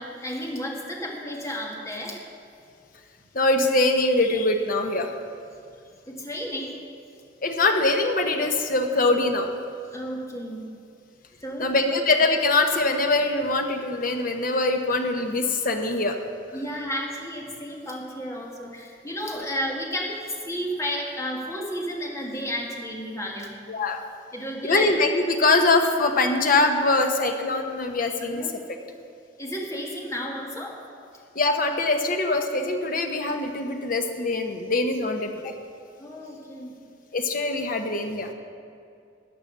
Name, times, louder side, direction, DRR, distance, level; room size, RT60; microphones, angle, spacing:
voice 1, 0.0-2.2 6.1-6.8 9.9-10.7 11.4-12.0 16.5-23.6 24.3-24.9 28.3-29.0 29.4-30.8 36.0-36.7, equal, 15° left, -1 dB, 1.8 m, -32 dB
voice 2, 3.3-5.1 7.4-9.5 11.6-16.2 19.4-19.5 23.7-24.0 24.6-28.4 31.3-35.5 37.1-38.3, left 2 dB, 45° left, 4 dB, 1.1 m, -23 dB
14.0 x 9.0 x 6.8 m, 2.4 s
head